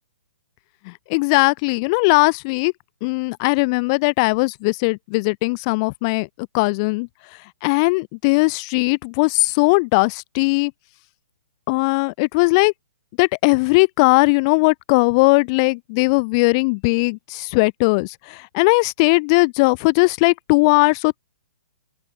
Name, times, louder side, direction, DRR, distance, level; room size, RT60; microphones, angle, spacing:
voice 1, 0.9-2.7 3.0-6.3 6.5-7.1 7.6-10.7 11.7-12.7 13.2-21.2, left 29 dB, 25° left, 5.4 m, -18 dB
open air
hypercardioid pair, 170°, 6 cm